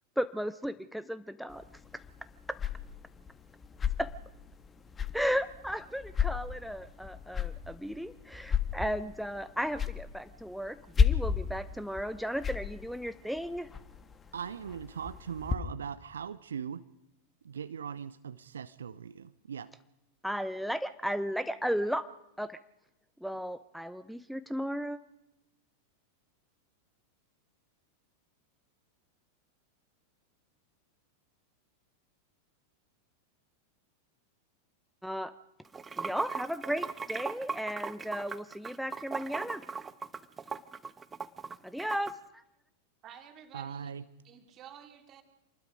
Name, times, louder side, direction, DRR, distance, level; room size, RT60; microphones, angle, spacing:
voice 1, 0.2-1.6 4.0-4.1 5.1-13.7 20.2-22.1 22.4-22.6 23.2-25.0 35.0-35.3 36.0-39.6 41.7-42.4, equal, ahead, 11 dB, 0.8 m, -35 dB
sound 1, 1.5-15.6, left 6 dB, 20° left, 1.5 m, -34 dB
voice 2, 14.3-16.8 17.4-19.7 43.5-44.0, right 7 dB, 70° right, 15 dB, 0.7 m, -40 dB
Water / Sink (filling or washing), 35.7-42.1, right 5 dB, 15° right, 1.2 m, -38 dB
voice 3, 43.0-43.9 44.2-45.2, right 9 dB, 30° right, 4 dB, 3.1 m, -50 dB
28.0 x 20.5 x 5.2 m, 0.92 s
figure-of-eight pair, 90°, 0 cm